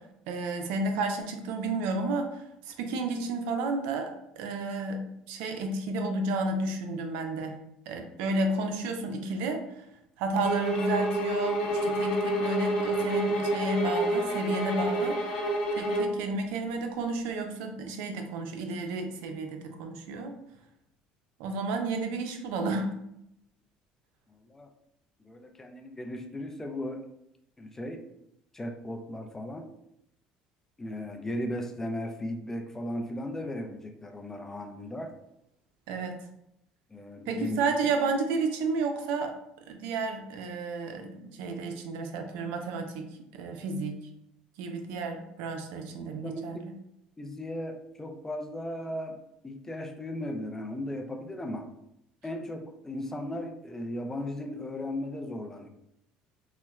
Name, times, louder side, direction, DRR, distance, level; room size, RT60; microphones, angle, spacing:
voice 1, 0.3-7.6 7.9-9.8 10.2-15.2 15.7-20.3 21.4-22.9 35.9-36.2 37.3-39.3 39.7-43.1 43.3-44.0 44.6-46.7, right 3 dB, 80° right, 5 dB, 0.4 m, -31 dB
sound 1, 10.4-16.2, right 1 dB, 80° left, 0.9 m, -28 dB
voice 2, 24.3-24.7 25.2-27.0 27.6-28.0 28.5-29.7 30.8-35.1 36.9-37.6 46.0-46.7 47.2-49.2 49.4-51.7 52.2-55.7, left 1 dB, 15° left, 4 dB, 0.4 m, -36 dB
4.0 x 2.1 x 2.3 m, 0.81 s
supercardioid pair, 105°, 3 cm